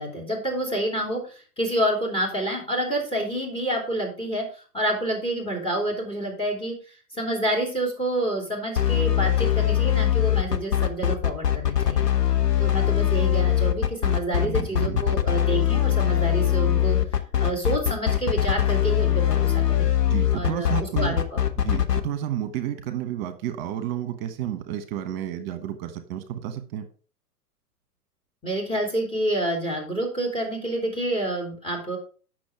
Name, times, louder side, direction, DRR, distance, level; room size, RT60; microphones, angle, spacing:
voice 1, 0.0-4.4 4.7-6.7 7.1-12.1 12.6-17.0 17.4-19.9 20.3-21.8 28.4-32.0, right 1 dB, 10° left, 3.2 m, -28 dB
sound 1, 8.8-22.0, left 11 dB, 75° left, 1.2 m, -22 dB
voice 2, 14.4-15.0 20.1-21.2 21.5-26.9, right 11 dB, 35° right, 1.3 m, -31 dB
8.5 x 6.4 x 4.8 m
figure-of-eight pair, 120°, 48 cm